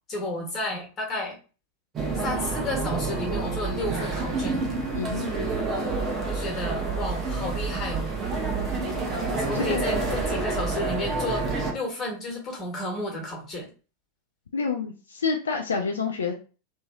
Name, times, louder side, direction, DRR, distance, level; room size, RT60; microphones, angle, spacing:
voice 1, 0.1-1.4 2.1-4.6 6.3-8.1 9.3-13.7, left 1 dB, 25° left, 1 dB, 1.3 m, -32 dB
sound 1, 1.9-11.7, right 3 dB, 25° right, 0.8 m, -28 dB
voice 2, 4.9-5.3 9.5-9.8 14.5-16.3, left 5 dB, 70° left, 3 dB, 0.4 m, -28 dB
3.1 x 2.7 x 2.3 m, 0.35 s
figure-of-eight pair, 90°, 0 cm